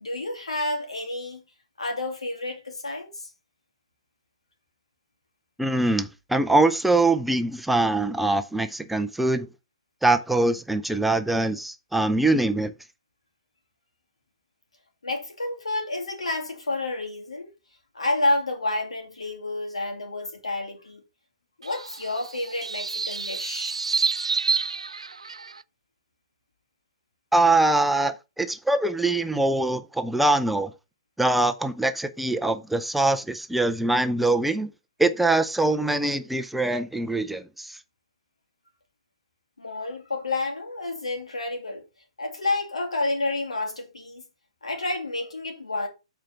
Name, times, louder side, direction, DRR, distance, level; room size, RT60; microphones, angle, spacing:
voice 1, 0.0-1.4 1.8-3.3 15.0-17.5 17.9-21.0 21.6-23.8 39.6-41.8 42.2-44.2 44.6-45.9, left 2 dB, 85° left, 2.7 m, -29 dB
voice 2, 5.6-9.5 10.0-12.7 27.3-30.7 31.2-34.7 35.0-37.8, right 2 dB, 5° right, 0.6 m, -23 dB
sound 1, 21.6-25.6, right 4 dB, 90° right, 0.4 m, -29 dB
7.5 x 4.6 x 5.8 m
hypercardioid pair, 125°, 3 cm